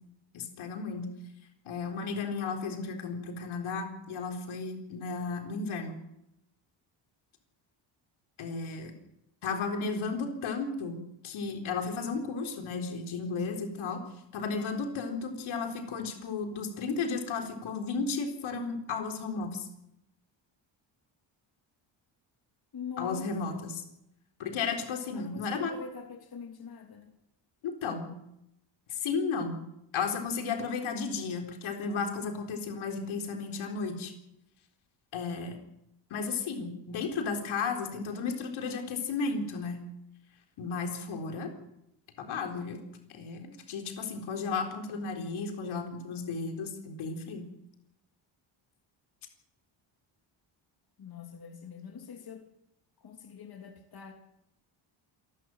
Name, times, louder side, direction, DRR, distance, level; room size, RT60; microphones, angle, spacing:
voice 1, 0.3-1.1 1.7-6.0 8.4-8.9 9.4-14.0 14.3-19.7 23.0-23.8 24.4-25.7 27.6-28.1 28.9-29.6 29.9-34.1 35.1-35.6 36.1-39.8 40.6-41.5 42.2-42.8 43.1-47.5, left 4 dB, 80° left, 3 dB, 4.0 m, -34 dB
voice 2, 22.7-23.7 25.1-27.1 51.0-52.5 53.0-54.1, left 6 dB, 50° left, 3 dB, 3.2 m, -43 dB
27.0 x 12.5 x 7.8 m, 0.82 s
cardioid pair, 100°, 48 cm